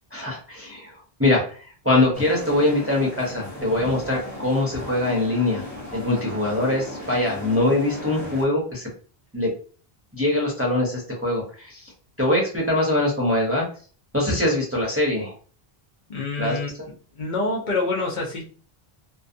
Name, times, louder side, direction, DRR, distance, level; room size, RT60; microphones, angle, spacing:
voice 1, 0.1-5.6 5.9-8.9 9.3-9.5 10.1-11.9 12.2-13.7 14.1-15.3 16.4-16.6, left 1 dB, 15° right, -3 dB, 0.6 m, -23 dB
sound 1, 2.1-8.4, left 1 dB, 20° left, 0.9 m, -36 dB
voice 2, 16.1-16.7 17.2-18.4, left 3 dB, 55° left, -3 dB, 0.8 m, -26 dB
2.4 x 2.3 x 2.5 m, 0.41 s
omnidirectional pair, 1.0 m